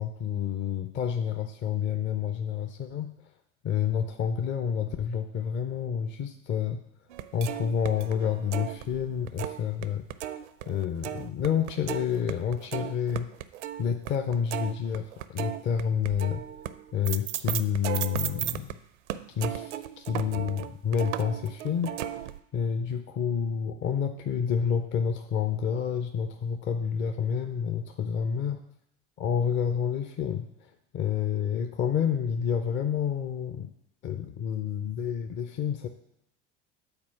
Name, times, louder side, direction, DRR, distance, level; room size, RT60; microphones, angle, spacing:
voice 1, 0.0-3.1 3.6-6.8 7.3-10.0 10.7-13.3 13.8-16.4 16.9-18.7 19.4-22.0 22.5-28.6 29.2-33.7 34.0-35.9, left 7 dB, 30° left, 6 dB, 0.6 m, -29 dB
sound 1, 7.1-9.8 10.1-18.7 19.1-22.4, right 12 dB, 70° right, 0.5 m, -35 dB
8.7 x 4.3 x 5.8 m, 0.79 s
figure-of-eight pair, 75°, 37 cm